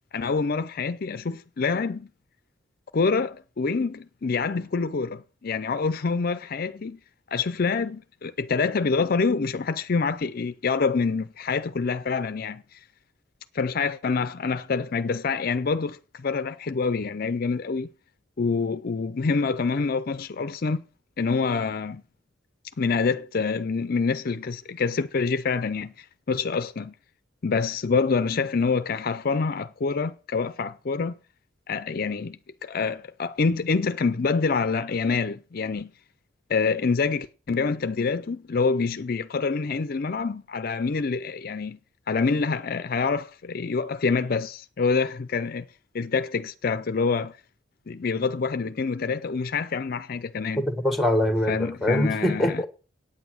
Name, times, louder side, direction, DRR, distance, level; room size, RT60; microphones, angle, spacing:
voice 1, 0.1-2.1 2.9-7.0 7.3-12.8 13.5-17.9 18.4-20.8 21.2-22.0 22.8-26.9 27.4-31.1 31.7-35.9 36.5-41.8 42.1-45.7 45.9-47.4 47.9-50.6 51.5-52.6, left 4 dB, 50° left, 0.5 m, -26 dB
voice 2, 50.8-52.6, left 1 dB, ahead, 1.3 m, -23 dB
9.1 x 8.9 x 6.2 m
head